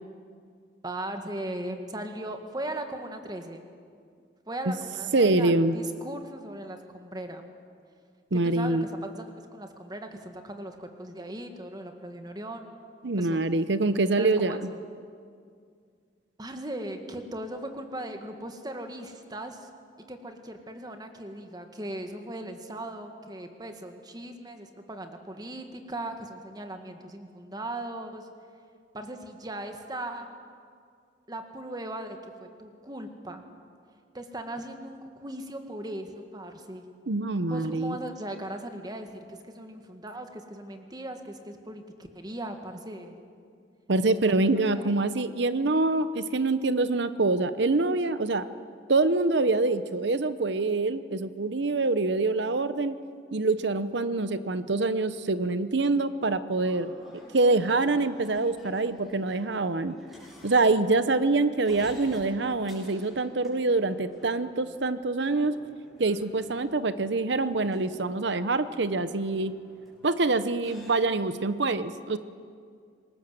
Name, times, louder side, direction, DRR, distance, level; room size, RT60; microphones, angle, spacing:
voice 1, 0.8-3.7 4.5-7.4 8.3-12.7 13.2-13.4 14.2-14.8 16.4-19.7 20.1-28.3 28.9-30.3 31.3-33.4 34.1-36.9 37.5-43.3 44.0-45.0, right 1 dB, 20° right, 5 dB, 2.0 m, -38 dB
voice 2, 5.1-5.8 8.3-8.9 13.0-14.6 37.1-38.0 43.9-48.5 48.9-53.0 53.3-56.9 57.3-60.0 60.4-65.6 66.0-69.5 70.0-72.2, right 3 dB, 70° right, 12 dB, 0.9 m, -25 dB
sound 1, 56.5-70.9, equal, ahead, 7.1 m, -51 dB
27.5 x 20.0 x 7.8 m, 2.2 s
head